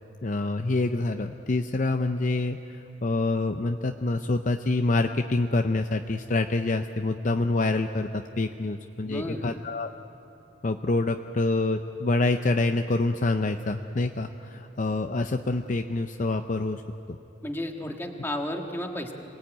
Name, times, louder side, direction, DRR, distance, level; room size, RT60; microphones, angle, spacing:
voice 1, 0.2-2.6 3.0-9.9 10.6-16.8 17.1-17.2, left 2 dB, 40° left, 6 dB, 0.6 m, -26 dB
voice 2, 9.0-9.5 17.4-19.1, left 1 dB, 10° left, 2 dB, 1.7 m, -33 dB
26.5 x 19.0 x 9.1 m, 2.9 s
head